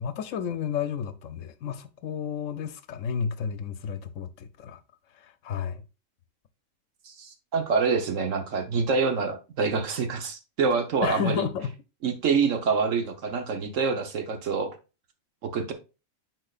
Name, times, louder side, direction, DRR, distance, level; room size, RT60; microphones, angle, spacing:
voice 1, 0.0-4.8 5.2-5.8 11.0-11.7, left 7 dB, 70° left, 1.0 m, -31 dB
voice 2, 7.0-11.5 12.0-14.8 15.4-15.7, right 5 dB, 65° right, 1.3 m, -26 dB
10.0 x 4.4 x 2.4 m
omnidirectional pair, 1.4 m